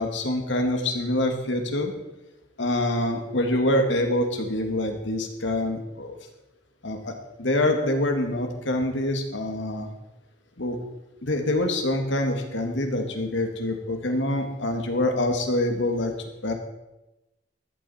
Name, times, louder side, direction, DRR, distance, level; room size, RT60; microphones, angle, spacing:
voice 1, 0.0-1.9 2.6-6.2 6.8-7.1 7.4-9.9 10.6-10.8 11.2-16.1 16.4-16.5, left 1 dB, 90° left, 4 dB, 2.1 m, -25 dB
14.5 x 11.5 x 4.4 m, 0.95 s
head